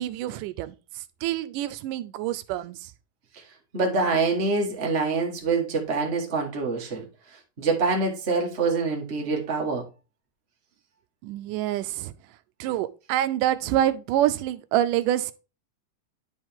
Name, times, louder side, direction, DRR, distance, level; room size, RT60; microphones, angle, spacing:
voice 1, 0.0-2.9 11.2-12.1 12.6-15.3, right 12 dB, 80° right, 2.0 m, -27 dB
voice 2, 3.7-7.0 7.6-9.9, right 4 dB, 65° right, 0.6 m, -25 dB
10.5 x 4.7 x 3.6 m
omnidirectional pair, 3.9 m